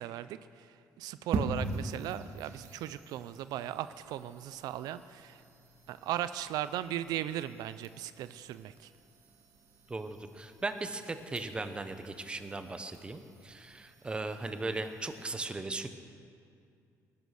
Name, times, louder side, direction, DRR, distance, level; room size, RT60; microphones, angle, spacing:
voice 1, 0.0-5.4 5.9-8.9, right 12 dB, 80° right, 14 dB, 0.5 m, -37 dB
sound 1, 1.3-15.3, right 3 dB, 50° right, 1.8 m, -43 dB
voice 2, 9.9-15.9, right 3 dB, 15° right, 9 dB, 0.9 m, -38 dB
19.0 x 10.5 x 6.5 m, 2.4 s
cardioid pair, 150°, 7 cm